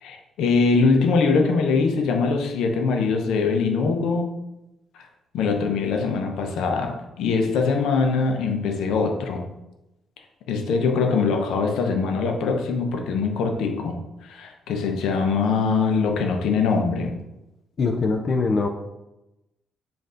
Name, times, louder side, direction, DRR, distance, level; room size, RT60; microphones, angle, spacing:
voice 1, 0.0-4.3 4.9-5.1 5.3-9.5 10.5-17.2, left 4 dB, 85° left, 4 dB, 0.6 m, -22 dB
voice 2, 17.8-18.7, left 4 dB, 40° left, 4 dB, 0.4 m, -22 dB
5.4 x 2.5 x 3.7 m, 0.96 s
cardioid pair, 140°, 0 cm